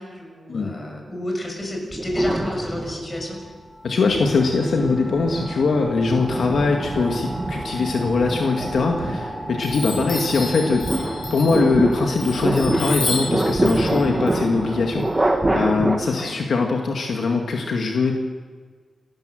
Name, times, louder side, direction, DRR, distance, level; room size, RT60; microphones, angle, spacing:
voice 1, 0.0-3.4 6.3-6.5 10.0-10.3 16.0-16.4, left 1 dB, 20° left, 1 dB, 6.4 m, -30 dB
sound 1, 1.9-3.3 3.9-16.0, right 1 dB, 20° right, 2.1 m, -26 dB
sound 2, 3.1-16.6, equal, 35° left, 6.5 m, -39 dB
voice 2, 3.8-10.9 11.3-18.1, left 4 dB, 65° left, 2 dB, 2.0 m, -22 dB
Chime, 8.7-9.3 9.6-15.5, left 2 dB, 50° left, 7.4 m, -32 dB
29.0 x 13.0 x 7.9 m, 1.5 s
wide cardioid pair, 125°, 0 cm